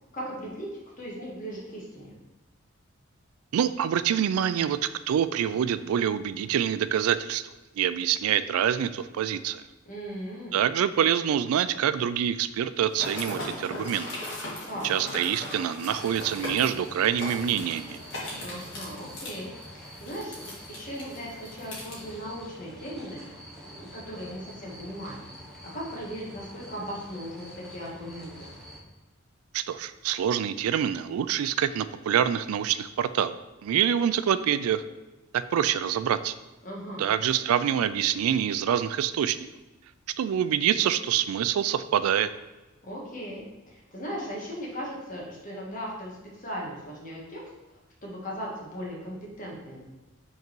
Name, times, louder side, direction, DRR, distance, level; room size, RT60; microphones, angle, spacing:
voice 1, 0.1-0.7 1.0-2.1 9.8-10.6 14.6-15.0 18.4-23.2 23.6-25.2 25.7-28.5 36.6-37.0 42.8-47.4 47.7-49.8, equal, 40° left, -3 dB, 1.4 m, -38 dB
voice 2, 3.5-4.8 5.1-7.4 7.8-9.6 10.5-14.1 14.8-18.0 29.5-33.3 33.6-34.8 35.3-36.3 37.0-39.4 40.2-42.3, right 9 dB, 80° right, 14 dB, 0.3 m, -26 dB
sound 1, 12.9-22.0, left 1 dB, 55° left, 1.8 m, -38 dB
sound 2, 15.9-28.8, equal, ahead, 0.8 m, -46 dB
5.3 x 3.9 x 4.5 m, 1.1 s
head